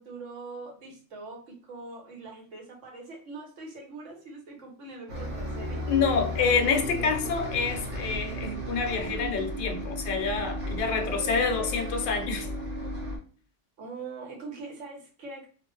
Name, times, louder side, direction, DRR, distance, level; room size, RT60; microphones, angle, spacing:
voice 1, 0.0-5.9 6.5-7.5 10.9-12.7 13.8-15.5, right 3 dB, 85° right, 0 dB, 1.2 m, -43 dB
Bus, 5.1-13.2, equal, 65° right, 0.9 m, -34 dB
voice 2, 5.9-12.5, left 5 dB, 60° left, 5 dB, 0.6 m, -27 dB
2.5 x 2.1 x 3.0 m, 0.41 s
omnidirectional pair, 1.2 m